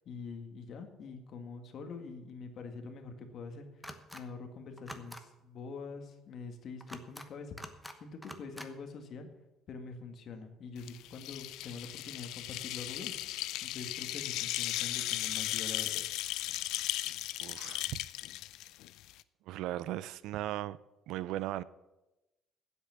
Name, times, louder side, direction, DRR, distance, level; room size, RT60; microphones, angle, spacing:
voice 1, 0.0-3.9 4.1-7.6 8.0-9.3 9.7-16.0, left 4 dB, 50° left, 1.9 m, -45 dB
sound 1, 3.8-4.2 4.8-5.2 6.8-7.3 7.6-8.0 8.2-8.7, equal, ahead, 1.0 m, -46 dB
sound 2, 10.8-19.2, left 15 dB, 80° left, 0.4 m, -36 dB
voice 2, 17.4-18.0 19.5-20.8 21.1-21.6, right 14 dB, 80° right, 0.5 m, -37 dB
9.1 x 8.2 x 9.2 m
cardioid pair, 140°, 0 cm